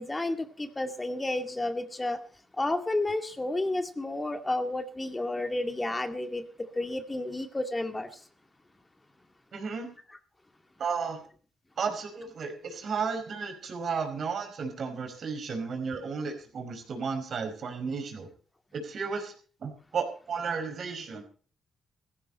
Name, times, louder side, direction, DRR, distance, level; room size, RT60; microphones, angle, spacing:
voice 1, 0.0-2.2 2.6-6.4 6.7-8.1, left 2 dB, 20° left, 2.2 m, -31 dB
voice 2, 9.5-9.9 10.8-11.2 11.8-18.3 18.7-19.3 19.6-21.2, right 5 dB, 60° right, 5.0 m, -33 dB
16.0 x 15.5 x 4.3 m
supercardioid pair, 50°, 0 cm